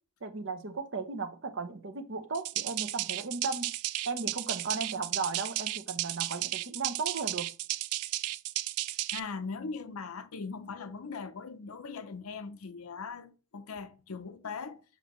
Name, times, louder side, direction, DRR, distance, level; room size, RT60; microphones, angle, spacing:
voice 1, 0.2-3.7 4.1-7.5, right 4 dB, 55° right, 0.8 m, -36 dB
sound 1, 2.3-9.2, right 15 dB, 90° right, 0.3 m, -34 dB
voice 2, 9.1-14.8, left 4 dB, 75° left, 0.6 m, -40 dB
7.4 x 5.7 x 3.1 m
head